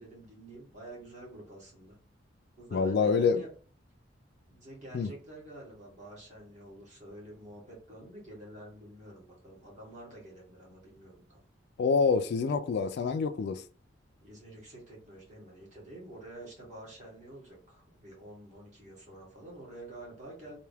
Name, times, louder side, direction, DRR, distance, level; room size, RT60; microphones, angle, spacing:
voice 1, 0.0-2.0 2.6-3.5 4.5-11.4 14.2-20.6, right 1 dB, 40° right, 1.8 m, -48 dB
voice 2, 2.7-3.4 4.9-5.1 11.8-13.6, left 5 dB, 55° left, 0.3 m, -26 dB
3.4 x 2.7 x 3.4 m
head